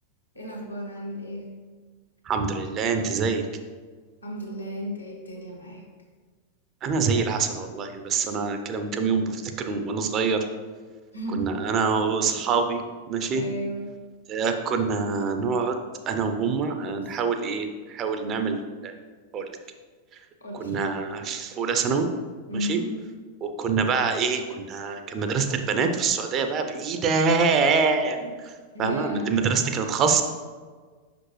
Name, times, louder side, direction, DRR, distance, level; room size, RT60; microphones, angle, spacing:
voice 1, 0.3-1.5 4.2-5.8 11.1-11.5 13.3-13.9 20.4-20.8 22.5-22.9 28.7-29.4, equal, 80° left, -2 dB, 1.3 m, -33 dB
voice 2, 2.3-3.4 6.8-10.4 11.3-13.4 14.3-15.8 16.1-18.9 19.3-19.5 20.5-22.1 22.5-22.8 23.4-28.5 28.8-30.2, right 5 dB, 30° right, 6 dB, 0.6 m, -25 dB
5.8 x 5.1 x 3.1 m, 1.5 s
figure-of-eight pair, 90°, 0 cm